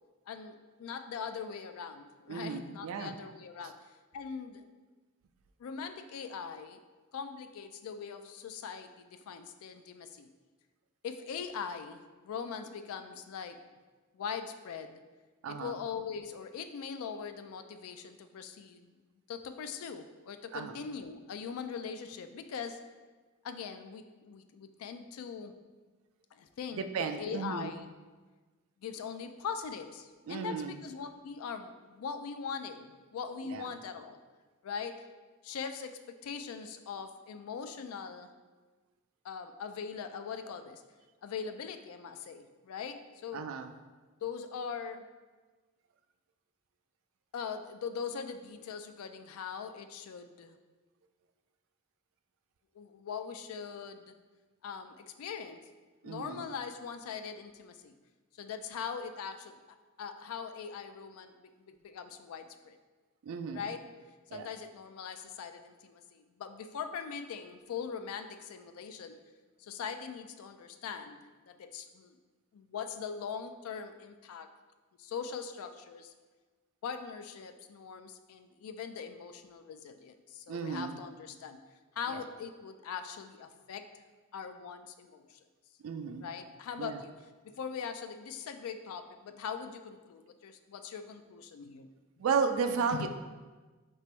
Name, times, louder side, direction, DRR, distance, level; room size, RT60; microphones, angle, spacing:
voice 1, 0.3-3.8 4.1-4.6 5.6-6.8 7.1-10.3 11.0-13.6 14.1-15.0 15.5-18.9 19.3-22.8 23.4-25.5 26.3-27.9 28.8-34.2 34.6-35.1 35.4-38.3 39.2-40.8 41.2-43.5 44.2-45.1 47.3-50.5 52.7-54.2 54.6-55.6 56.0-57.9 58.4-59.6 60.0-62.8 63.5-63.8 64.3-69.2 69.6-72.2 72.5-74.5 75.0-76.1 76.8-81.6 82.0-83.9 84.3-85.4 86.2-87.1 87.4-91.9 92.9-93.1, left 6 dB, 80° left, 9 dB, 0.3 m, -41 dB
voice 2, 2.3-3.1 15.4-15.8 20.5-20.7 26.8-27.7 30.3-30.8 33.4-33.7 43.3-43.7 56.0-56.5 63.2-63.7 64.3-64.5 80.5-81.0 82.1-82.2 85.8-86.3 86.8-87.0 92.2-93.1, right 5 dB, 70° right, 7 dB, 0.3 m, -34 dB
3.3 x 2.9 x 4.3 m, 1.3 s
head